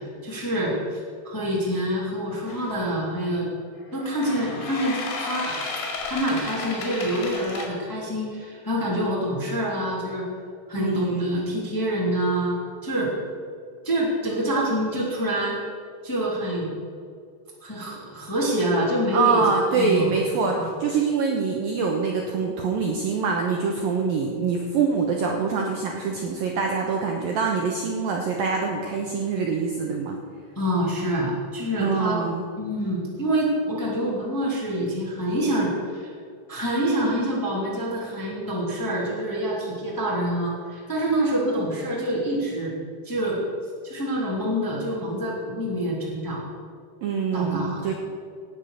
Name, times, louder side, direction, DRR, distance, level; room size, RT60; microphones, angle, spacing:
voice 1, 0.0-3.5 3.9-5.5 6.1-10.2 10.7-12.5 12.8-13.1 13.8-15.6 16.0-16.7 17.6-20.1 20.5-20.7 30.5-32.2 32.6-36.1 36.5-42.7 43.0-43.4 43.8-46.4 47.3-47.8, right 1 dB, 10° left, -5 dB, 1.4 m, -26 dB
sound 1, 2.5-2.8 4.0-7.7, left 4 dB, 65° left, 4.2 m, -33 dB
voice 2, 10.7-11.6 19.1-30.2 31.8-32.4 47.0-47.9, right 5 dB, 85° right, 1 dB, 2.0 m, -25 dB
18.0 x 7.5 x 6.5 m, 2.2 s
omnidirectional pair, 5.7 m